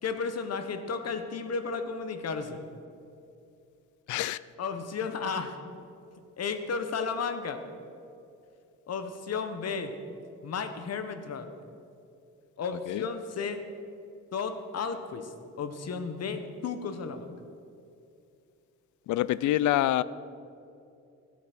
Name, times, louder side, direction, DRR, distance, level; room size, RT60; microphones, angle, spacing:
voice 1, 0.0-2.6 4.6-5.6 6.4-7.6 8.9-10.0 10.4-11.5 12.6-13.6 14.3-17.3, left 5 dB, 55° left, 9 dB, 1.2 m, -33 dB
voice 2, 4.1-4.4 12.9-13.0 19.1-20.0, left 14 dB, 75° left, 19 dB, 0.5 m, -26 dB
15.5 x 8.5 x 6.1 m, 2.6 s
cardioid pair, 90°, 30 cm